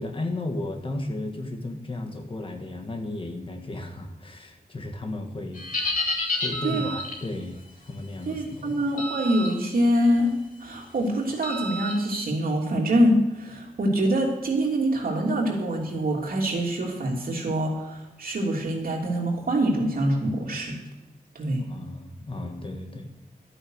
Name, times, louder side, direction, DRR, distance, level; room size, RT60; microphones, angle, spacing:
voice 1, 0.0-5.7 6.3-7.6 7.9-8.8 21.7-23.1, left 2 dB, 35° left, 4 dB, 1.6 m, -34 dB
sound 1, 5.5-7.2 9.0-9.5 9.9-10.2 11.4-11.9, left 2 dB, 65° left, 2.7 m, -29 dB
voice 2, 8.3-10.3 10.6-20.8 21.3-21.6, right 1 dB, 75° right, -1 dB, 3.0 m, -25 dB
12.5 x 9.1 x 6.4 m, 0.97 s
wide cardioid pair, 165°, 15 cm